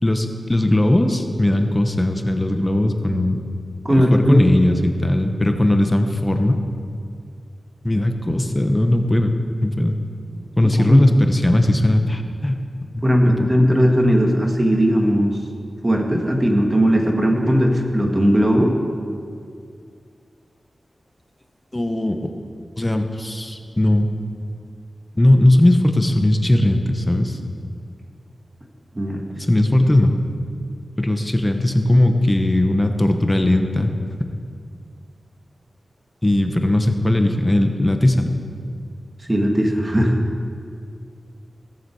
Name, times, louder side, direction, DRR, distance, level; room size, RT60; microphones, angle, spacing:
voice 1, 0.0-3.4 3.9-6.6 7.8-9.3 9.6-10.0 10.6-12.6 12.9-13.4 13.7-13.8 21.7-22.3 22.8-24.1 25.1-27.4 29.5-30.1 31.0-33.9 36.2-38.3, left 1 dB, 25° left, 5 dB, 1.1 m, -18 dB
voice 2, 3.8-4.4 10.6-11.0 13.0-15.4 15.8-18.8 28.9-29.3 39.3-40.2, equal, 25° right, 2 dB, 1.8 m, -18 dB
17.0 x 7.3 x 4.9 m, 2.3 s
cardioid pair, 50°, 0 cm